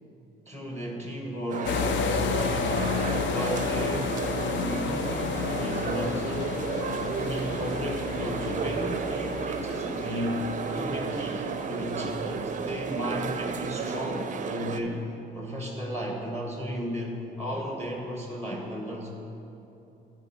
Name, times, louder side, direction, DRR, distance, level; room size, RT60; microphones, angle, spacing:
voice 1, 0.5-4.2 4.4-6.6 6.9-15.1 15.3-19.1, equal, 15° left, 0 dB, 0.9 m, -34 dB
sound 1, 1.5-14.8, right 6 dB, 40° right, 0.4 m, -32 dB
sound 2, 1.6-13.7, left 7 dB, 70° left, 0.4 m, -32 dB
9.6 x 4.6 x 5.7 m, 2.9 s
cardioid pair, 90°, 20 cm